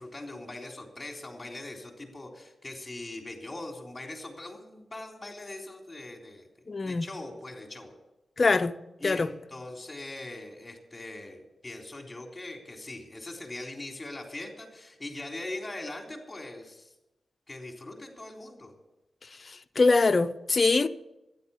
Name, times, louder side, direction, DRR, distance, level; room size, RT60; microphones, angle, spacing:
voice 1, 0.0-6.5 6.9-7.9 9.0-16.9 17.5-18.7, left 2 dB, 30° left, 3.6 m, -41 dB
voice 2, 6.7-7.1 8.4-8.8 9.0-9.3 19.5-20.9, left 3 dB, 50° left, 0.7 m, -23 dB
12.0 x 10.0 x 8.4 m
cardioid pair, 50°, 0 cm